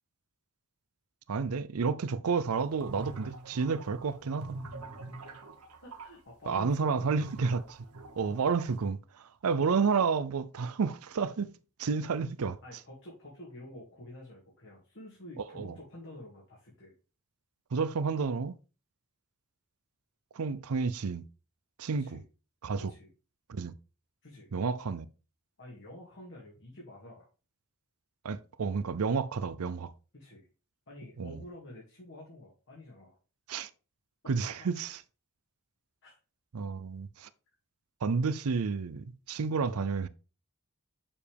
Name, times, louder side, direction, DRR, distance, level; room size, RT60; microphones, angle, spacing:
voice 1, 1.3-4.6 6.5-7.8 8.2-11.5 11.8-12.6 15.6-15.7 17.7-18.6 20.4-21.2 21.8-22.2 22.6-22.9 23.5-23.7 24.5-25.1 28.2-29.9 31.2-31.4 33.5-33.7 34.3-34.9 36.5-37.3 38.0-40.1, right 5 dB, 70° right, 0.5 m, -30 dB
sound 1, 2.6-6.1 7.2-8.9, right 2 dB, 90° right, 1.3 m, -44 dB
voice 2, 5.8-7.1 12.6-16.9 21.9-22.2 22.8-23.1 24.2-24.5 25.6-27.3 30.1-30.5 30.9-33.1 34.4-34.7 36.0-36.2, left 1 dB, 55° left, 2.3 m, -49 dB
7.0 x 6.9 x 3.4 m
head